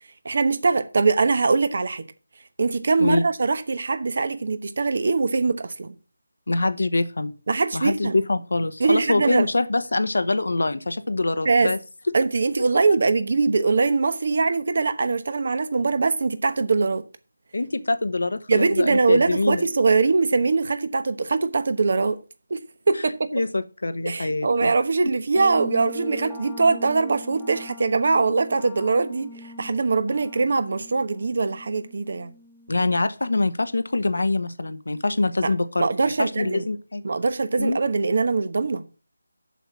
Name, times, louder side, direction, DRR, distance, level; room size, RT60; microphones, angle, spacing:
voice 1, 0.2-2.0 2.6-5.9 7.5-8.2 8.8-9.5 11.4-11.7 12.1-17.0 18.5-22.2 22.5-22.6 22.9-23.3 24.0-29.3 29.6-32.3 35.4-36.7 37.0-38.8, right 4 dB, 55° right, 1.1 m, -22 dB
voice 2, 6.5-7.3 7.7-11.8 17.5-19.6 23.3-24.7 32.7-37.0 37.6-37.8, left 2 dB, 70° left, 0.9 m, -24 dB
sound 1, 25.3-33.0, left 1 dB, ahead, 1.2 m, -42 dB
7.2 x 5.9 x 7.3 m
figure-of-eight pair, 160°, 0 cm